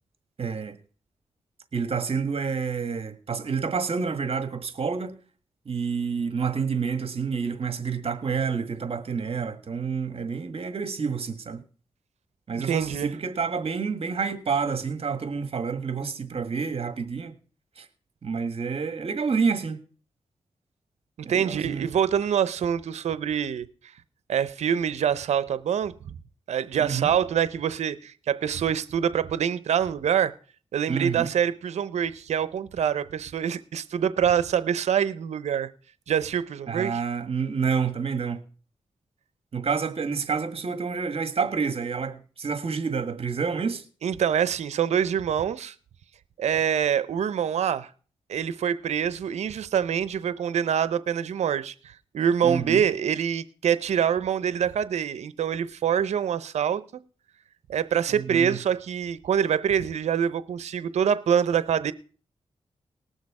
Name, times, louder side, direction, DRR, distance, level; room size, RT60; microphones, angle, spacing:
voice 1, 0.4-0.8 1.7-5.2 5.6-11.6 12.5-17.3 17.8-17.9 18.2-19.8 21.2-21.9 26.8-27.1 30.9-31.3 36.7-38.4 39.5-43.8 52.4-52.8 58.1-58.6, right 5 dB, 60° right, 1.6 m, -28 dB
voice 2, 12.6-13.1 21.3-23.7 24.3-26.1 26.5-30.3 30.7-35.7 36.1-37.0 44.0-45.7 46.4-47.9 48.3-56.8 57.7-61.9, right 8 dB, 85° right, 0.7 m, -25 dB
19.5 x 6.5 x 4.8 m
cardioid pair, 55°, 11 cm